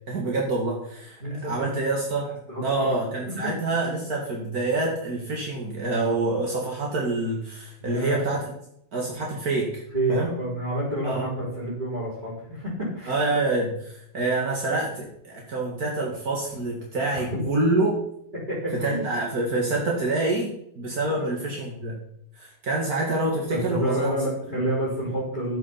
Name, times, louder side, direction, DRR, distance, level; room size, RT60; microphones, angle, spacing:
voice 1, 0.1-2.3 2.6-8.4 8.9-9.8 10.1-10.4 11.0-11.2 13.1-17.9 18.7-22.0 22.4-24.1, right 2 dB, 70° right, -2 dB, 2.5 m, -27 dB
voice 2, 1.2-1.7 2.5-2.9 3.3-3.4 7.8-8.2 9.9-13.1 17.1-17.4 18.5-19.1 21.1-21.2 23.5-25.6, right 1 dB, 30° right, -8 dB, 4.6 m, -29 dB
11.5 x 9.3 x 5.7 m, 0.74 s
omnidirectional pair, 1.7 m